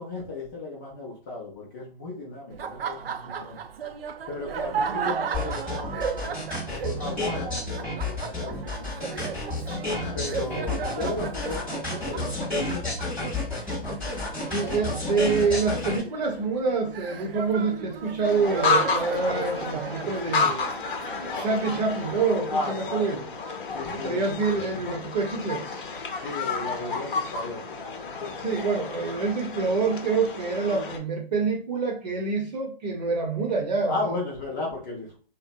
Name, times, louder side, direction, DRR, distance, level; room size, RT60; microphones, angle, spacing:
voice 1, 0.0-3.6 4.3-6.4 6.7-9.3 10.1-13.5 14.6-14.8 22.4-23.2 23.7-24.2 26.2-27.6 33.9-35.2, left 2 dB, 20° left, -4 dB, 0.5 m, -35 dB
Laughter, 2.5-22.4, right 7 dB, 70° right, 0.5 m, -35 dB
sound 1, 5.3-16.0, left 2 dB, 5° left, 0.9 m, -31 dB
voice 2, 14.5-20.6 21.3-23.2 23.9-25.7 28.4-33.9, right 4 dB, 45° right, 1 dB, 0.8 m, -26 dB
sound 2, 18.2-31.0, left 4 dB, 55° left, 0.7 m, -31 dB
2.6 x 2.1 x 2.5 m, 0.39 s
hypercardioid pair, 145°, 31 cm